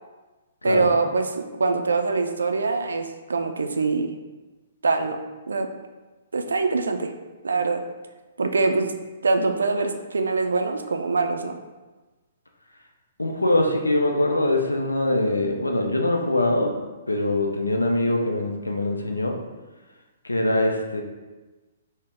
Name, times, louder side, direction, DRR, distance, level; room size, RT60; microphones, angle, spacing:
voice 1, 0.6-4.1 4.8-5.2 5.5-5.7 6.3-7.1 7.4-7.8 8.4-8.8 9.2-11.6, right 3 dB, 70° right, 6 dB, 0.3 m, -23 dB
voice 2, 13.2-16.8 17.1-19.4 20.2-21.0, left 1 dB, 85° left, 2 dB, 0.4 m, -23 dB
3.9 x 2.0 x 3.4 m, 1.2 s
figure-of-eight pair, 120°, 0 cm